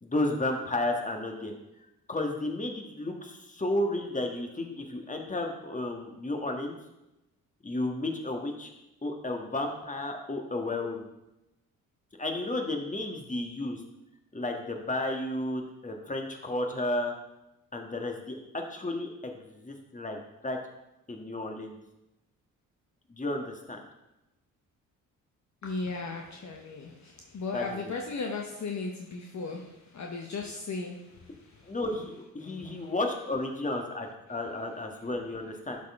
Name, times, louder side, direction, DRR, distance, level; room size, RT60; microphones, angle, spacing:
voice 1, 0.0-1.5 2.1-6.7 7.6-8.7 9.0-11.0 12.2-13.8 14.3-17.1 17.7-20.6 21.1-21.8 23.1-23.8 27.5-27.9 31.7-35.8, left 2 dB, 20° left, 3 dB, 1.6 m, -32 dB
voice 2, 25.6-31.1, left 3 dB, 45° left, 1 dB, 1.1 m, -36 dB
12.0 x 4.3 x 3.7 m, 0.93 s
hypercardioid pair, 40°, 41 cm